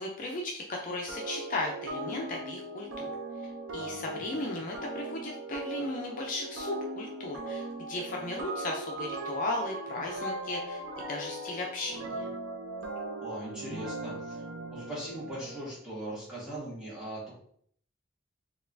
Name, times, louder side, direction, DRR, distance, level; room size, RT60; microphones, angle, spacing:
voice 1, 0.0-12.3, left 2 dB, 40° left, -1 dB, 0.4 m, -36 dB
sound 1, 1.1-15.7, right 2 dB, 80° right, 0.6 m, -39 dB
voice 2, 3.7-4.3 13.2-17.3, right 1 dB, 5° right, -8 dB, 1.4 m, -40 dB
3.9 x 2.4 x 2.6 m, 0.62 s
head